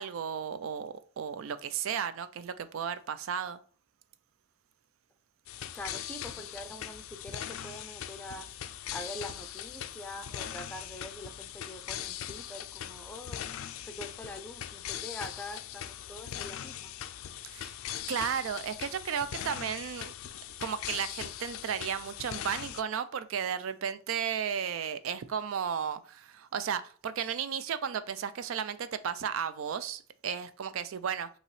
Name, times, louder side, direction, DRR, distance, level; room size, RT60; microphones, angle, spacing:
voice 1, 0.0-3.6 17.4-17.8 18.1-20.1 20.6-31.3, right 7 dB, 75° right, 0.4 m, -34 dB
sound 1, 5.5-22.8, left 10 dB, 80° left, 0.4 m, -40 dB
voice 2, 5.7-8.5 8.9-13.5 13.8-17.0, left 1 dB, 5° left, 0.4 m, -44 dB
5.3 x 2.9 x 3.1 m
head